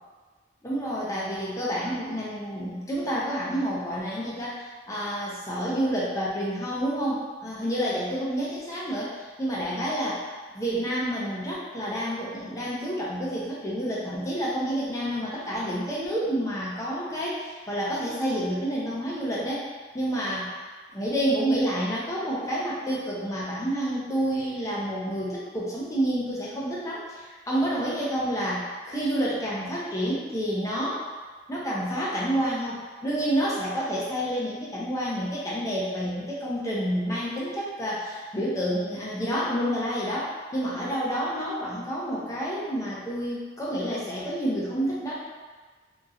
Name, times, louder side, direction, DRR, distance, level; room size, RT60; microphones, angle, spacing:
voice 1, 0.6-19.7 19.9-20.6 20.9-31.0 31.5-45.1, equal, 15° left, -6 dB, 0.6 m, -29 dB
2.9 x 2.7 x 2.4 m, 1.4 s
head